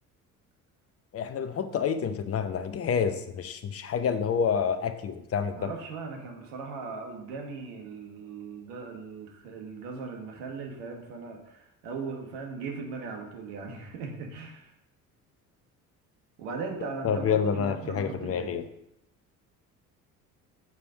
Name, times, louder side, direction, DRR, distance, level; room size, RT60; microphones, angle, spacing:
voice 1, 1.1-5.7 17.0-18.7, left 7 dB, 30° left, 10 dB, 0.8 m, -28 dB
voice 2, 5.5-14.7 16.4-18.6, right 4 dB, 65° right, 2 dB, 1.7 m, -38 dB
7.0 x 5.0 x 5.0 m, 0.80 s
figure-of-eight pair, 55°, 45 cm